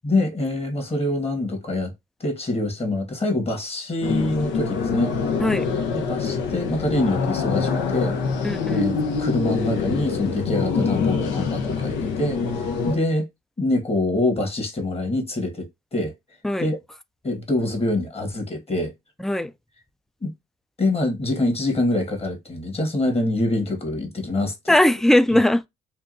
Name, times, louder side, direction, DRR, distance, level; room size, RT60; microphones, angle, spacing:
voice 1, 0.0-1.9 2.2-5.4 5.9-8.2 8.4-13.3 13.6-15.7 15.9-16.1 16.6-16.8 17.2-18.9 20.2-20.3 20.8-24.7, left 2 dB, 30° left, 1.6 m, -25 dB
sound 1, 4.0-13.0, left 5 dB, 80° left, 0.7 m, -25 dB
voice 2, 8.4-8.8 16.4-16.7 19.2-19.5 24.7-25.7, left 1 dB, ahead, 0.4 m, -19 dB
3.5 x 2.7 x 2.5 m
hypercardioid pair, 50°, 19 cm